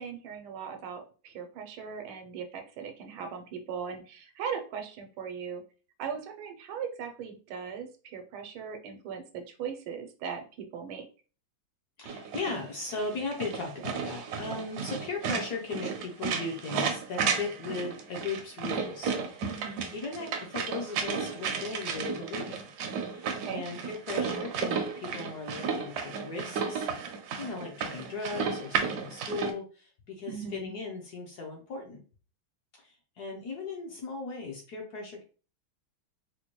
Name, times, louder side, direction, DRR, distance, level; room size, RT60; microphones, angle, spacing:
voice 1, 0.0-5.6 6.0-11.0 19.5-19.8 23.4-23.6 30.3-30.7, right 6 dB, 85° right, 5 dB, 1.4 m, -39 dB
voice 2, 12.0-22.7 23.1-32.0 32.7-35.2, left 3 dB, 65° left, 0 dB, 1.0 m, -38 dB
sound 1, 12.1-29.5, right 6 dB, 70° right, 1.0 m, -33 dB
4.2 x 2.2 x 2.9 m, 0.37 s
omnidirectional pair, 2.2 m